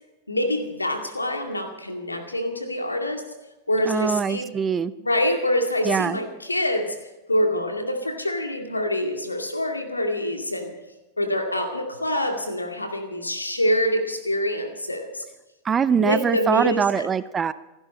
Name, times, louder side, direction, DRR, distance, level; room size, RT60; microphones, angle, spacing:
voice 1, 0.3-3.2 3.7-4.5 5.0-7.0 7.3-10.7 11.2-15.2 15.9-17.1, left 1 dB, 80° left, 5 dB, 2.3 m, -25 dB
voice 2, 3.9-4.9 5.8-6.2 15.6-17.5, right 7 dB, 20° right, 16 dB, 0.6 m, -23 dB
27.5 x 11.5 x 4.3 m, 1.0 s
figure-of-eight pair, 90°, 0 cm